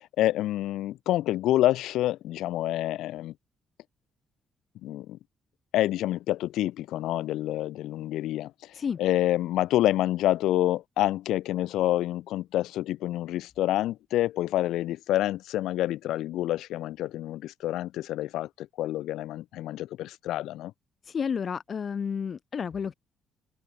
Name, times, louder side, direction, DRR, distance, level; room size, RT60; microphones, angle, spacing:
voice 1, 0.0-3.3 4.8-5.2 5.7-20.7, left 14 dB, 85° left, 0.9 m, -28 dB
voice 2, 21.1-22.9, left 6 dB, 45° left, 0.4 m, -31 dB
open air
cardioid pair, 90°, 0 cm